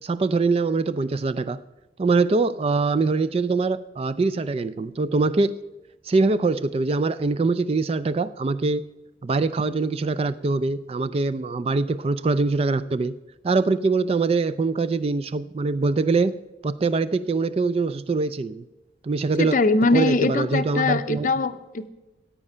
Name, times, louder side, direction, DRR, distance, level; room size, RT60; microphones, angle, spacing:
voice 1, 0.0-1.6 2.0-5.5 6.1-8.9 9.2-13.1 13.4-16.4 16.6-18.6 19.0-19.6 19.9-21.3, right 3 dB, 30° right, 14 dB, 0.3 m, -23 dB
voice 2, 19.4-21.9, left 3 dB, 45° left, 11 dB, 0.6 m, -22 dB
15.0 x 8.7 x 5.5 m, 1.0 s
head